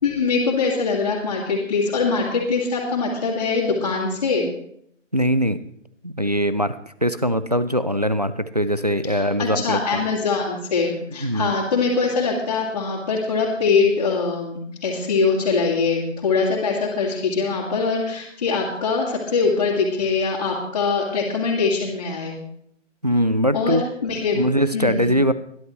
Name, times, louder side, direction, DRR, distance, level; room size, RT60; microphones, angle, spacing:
voice 1, 0.0-4.5 9.1-22.3 23.5-23.8 24.0-24.4 24.7-25.1, left 4 dB, 30° left, -6 dB, 2.3 m, -22 dB
voice 2, 5.1-5.6 6.0-10.0 11.2-11.6 23.0-23.8 24.3-25.3, equal, 35° right, 13 dB, 0.4 m, -21 dB
21.5 x 11.0 x 3.1 m, 0.71 s
figure-of-eight pair, 160°, 38 cm